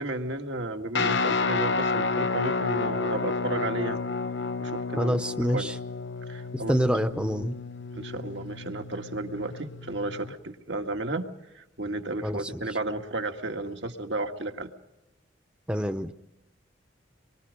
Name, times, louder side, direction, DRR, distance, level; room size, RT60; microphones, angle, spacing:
voice 1, 0.0-4.0 4.6-5.8 6.3-6.8 7.1-7.2 7.9-11.3 11.5-14.7, right 2 dB, 75° right, 4 dB, 2.0 m, -33 dB
Guitar, 0.9-10.3, left 4 dB, 75° left, 0.8 m, -30 dB
voice 2, 5.0-5.7 6.7-7.5 12.2-12.4 15.7-16.1, equal, 5° right, 9 dB, 0.7 m, -26 dB
27.0 x 23.0 x 5.3 m, 0.96 s
head